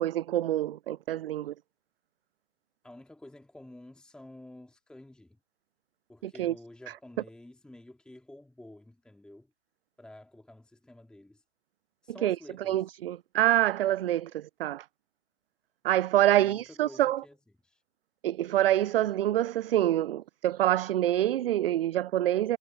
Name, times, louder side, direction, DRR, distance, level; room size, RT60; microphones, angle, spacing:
voice 1, 0.0-1.5 6.2-6.5 12.2-12.4 12.7-14.9 15.8-17.2 18.2-22.6, right 13 dB, 55° right, 0.5 m, -26 dB
voice 2, 2.8-5.4 6.1-9.5 10.0-11.4 12.0-12.9 16.3-17.4 17.6-17.8, left 1 dB, ahead, 2.1 m, -50 dB
figure-of-eight pair, 120°, 35 cm